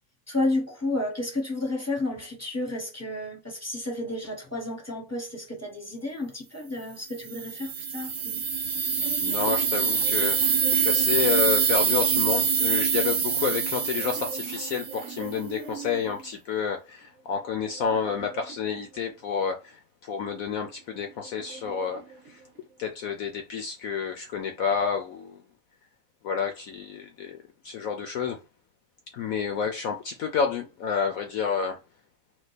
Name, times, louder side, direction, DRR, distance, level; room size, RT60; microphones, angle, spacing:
voice 1, 0.3-8.4, left 2 dB, 15° left, 0.6 m, -31 dB
sound 1, 7.3-15.2, right 6 dB, 85° right, 0.5 m, -25 dB
sound 2, 8.6-12.0 13.0-16.4 17.0-19.4 20.5-22.9, right 6 dB, 55° right, 0.9 m, -44 dB
voice 2, 9.2-10.4 10.7-22.4 22.8-25.4 26.2-27.4 27.6-28.4 29.1-31.8, left 6 dB, 70° left, 0.8 m, -29 dB
4.4 x 2.4 x 4.0 m
omnidirectional pair, 2.0 m